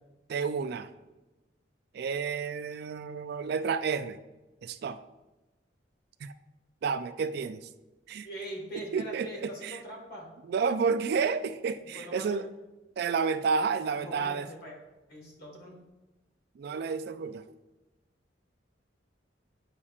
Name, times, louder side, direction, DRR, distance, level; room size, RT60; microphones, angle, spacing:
voice 1, 0.3-0.9 1.9-4.2 4.6-5.0 6.2-6.3 6.8-7.6 8.1-8.3 8.9-9.8 10.5-12.5 13.0-14.5 16.6-17.4, right 5 dB, 60° right, 12 dB, 0.3 m, -30 dB
voice 2, 8.2-10.3 11.9-12.4 14.0-14.7 15.1-15.8, equal, 55° left, -1 dB, 1.6 m, -42 dB
8.5 x 5.3 x 2.4 m, 1.1 s
head